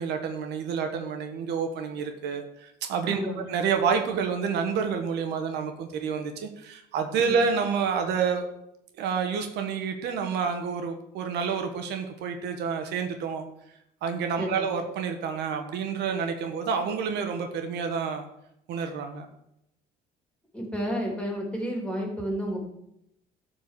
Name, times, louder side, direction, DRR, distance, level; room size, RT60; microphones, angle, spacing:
voice 1, 0.0-3.2 3.5-8.5 9.0-13.4 14.0-18.2 18.7-19.3, right 6 dB, 80° right, 5 dB, 1.4 m, -29 dB
voice 2, 3.1-3.4 7.2-7.4 14.4-14.6 20.5-22.7, equal, 5° left, 0 dB, 3.2 m, -31 dB
12.5 x 4.6 x 6.7 m, 0.80 s
cardioid pair, 110°, 17 cm